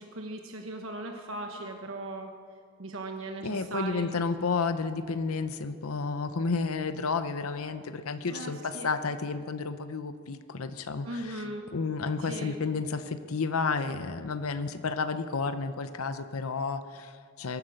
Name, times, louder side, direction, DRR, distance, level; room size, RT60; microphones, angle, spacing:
voice 1, 0.0-2.3 2.8-4.1 8.3-8.9 11.0-11.7 12.2-12.6, right 2 dB, 70° right, 3 dB, 1.1 m, -38 dB
voice 2, 3.4-11.4 11.7-17.6, left 4 dB, 85° left, 10 dB, 0.7 m, -31 dB
22.0 x 9.9 x 6.4 m, 2.1 s
head